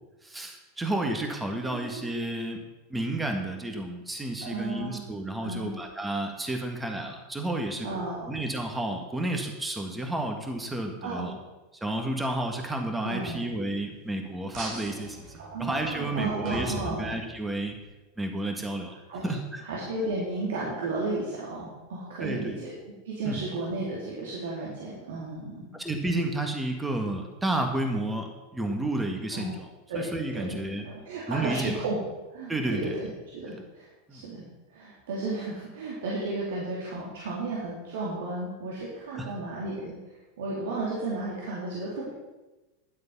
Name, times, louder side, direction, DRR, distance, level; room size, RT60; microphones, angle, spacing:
voice 1, 0.2-2.6 2.9-7.9 8.3-11.3 11.8-15.3 15.6-17.8 18.2-19.0 19.2-19.6 22.2-22.6 23.3-23.4 25.7-29.7 30.0-30.9 31.3-31.7 32.5-33.0 34.1-34.2 39.1-39.3, right 1 dB, 10° right, 4 dB, 1.9 m, -31 dB
voice 2, 4.4-5.0 5.4-5.7 7.8-8.4 11.0-11.3 13.0-13.4 15.4-17.0 19.1-19.2 19.6-22.7 23.0-25.7 29.3-29.5 29.9-30.0 30.3-30.5 30.8-32.0 32.3-40.0 40.4-42.1, right 2 dB, 70° right, -6 dB, 3.0 m, -33 dB
sound 1, 14.5-17.7, right 2 dB, 50° right, 2.7 m, -40 dB
11.5 x 7.7 x 5.6 m, 1.1 s
hypercardioid pair, 90°, 0 cm